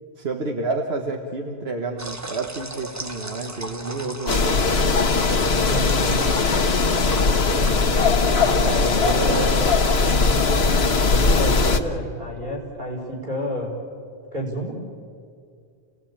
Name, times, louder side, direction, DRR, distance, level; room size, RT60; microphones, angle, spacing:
voice 1, 0.2-5.0 8.6-10.2, right 3 dB, 80° right, 3 dB, 1.6 m, -30 dB
sound 1, 2.0-8.2, right 1 dB, 15° right, 1.0 m, -37 dB
sound 2, 4.3-11.8, left 4 dB, 85° left, 1.5 m, -19 dB
voice 2, 5.6-6.1 8.4-9.6 11.3-13.7 14.3-14.7, equal, 55° right, 0 dB, 5.2 m, -30 dB
29.0 x 18.0 x 8.8 m, 2.3 s
omnidirectional pair, 1.0 m